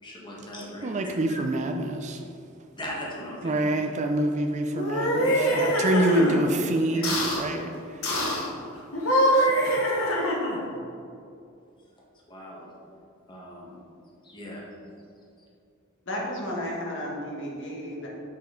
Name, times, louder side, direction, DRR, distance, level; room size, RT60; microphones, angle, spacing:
voice 1, 0.0-0.9 1.3-1.4 2.8-3.9 5.2-6.1 6.9-7.1 12.3-12.7 13.3-13.8 14.2-14.6, equal, 25° left, -4 dB, 1.3 m, -37 dB
voice 2, 0.8-2.2 3.4-5.3 5.6-8.4 9.3-9.5, right 1 dB, 35° right, 5 dB, 0.4 m, -27 dB
sound 1, 4.7-6.4 7.0-7.4 8.0-8.5 8.9-10.7, equal, 85° left, 1.2 m, -24 dB
voice 3, 16.0-18.1, equal, 60° left, -3 dB, 1.5 m, -33 dB
6.8 x 5.4 x 3.8 m, 2.5 s
head